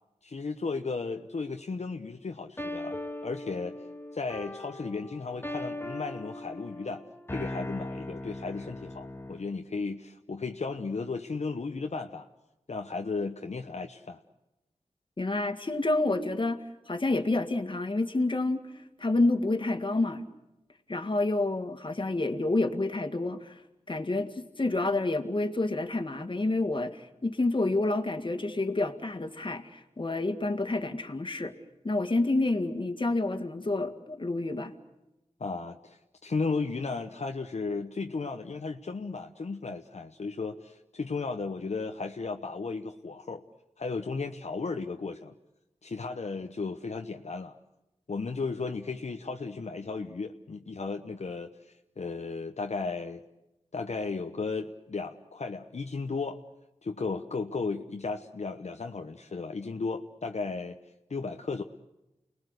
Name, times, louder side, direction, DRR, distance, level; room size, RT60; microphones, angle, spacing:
voice 1, 0.2-3.0 3.2-3.7 4.1-7.0 7.3-12.3 12.7-14.2 35.4-43.4 43.8-45.3 45.8-47.5 48.1-53.2 53.7-56.4 56.8-60.8 61.1-61.6, left 4 dB, 65° left, 4 dB, 1.1 m, -35 dB
sound 1, 2.6-9.5, left 1 dB, 20° left, 1.3 m, -39 dB
voice 2, 15.2-16.6 16.9-18.6 19.0-20.3 20.9-23.6 23.9-31.5 31.8-34.7, left 2 dB, 45° left, 7 dB, 2.0 m, -28 dB
29.5 x 20.0 x 8.1 m, 0.94 s
wide cardioid pair, 60°, 12 cm